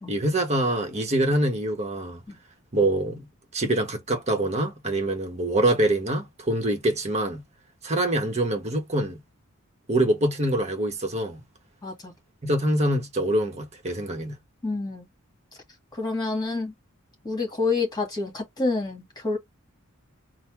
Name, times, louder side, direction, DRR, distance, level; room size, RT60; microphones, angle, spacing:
voice 1, 0.1-2.2 2.7-3.3 3.5-7.4 7.8-9.2 9.9-11.4 12.4-14.3, right 1 dB, 30° right, 1.2 m, -25 dB
voice 2, 11.8-12.1 14.6-15.1 15.9-16.7 17.2-19.4, left 3 dB, 20° left, 2.0 m, -28 dB
4.1 x 2.2 x 4.5 m
head